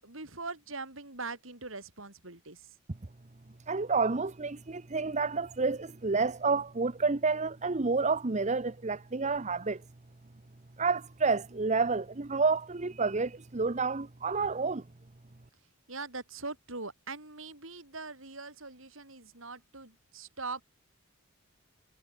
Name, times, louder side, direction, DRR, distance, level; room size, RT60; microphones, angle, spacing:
voice 1, 0.0-2.7 15.9-20.6, right 3 dB, 70° right, 7.3 m, -42 dB
voice 2, 3.7-9.8 10.8-14.8, right 4 dB, 35° right, 0.9 m, -29 dB
head